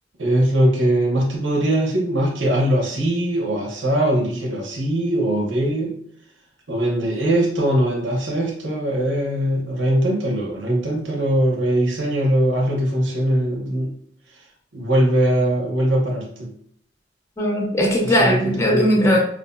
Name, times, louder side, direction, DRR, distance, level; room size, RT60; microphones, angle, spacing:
voice 1, 0.2-6.0 6.7-13.9 14.7-16.5 18.0-19.1, right 1 dB, 90° right, -1 dB, 0.9 m, -21 dB
voice 2, 17.4-19.2, equal, 15° left, -1 dB, 0.6 m, -18 dB
4.7 x 2.6 x 2.3 m, 0.67 s
head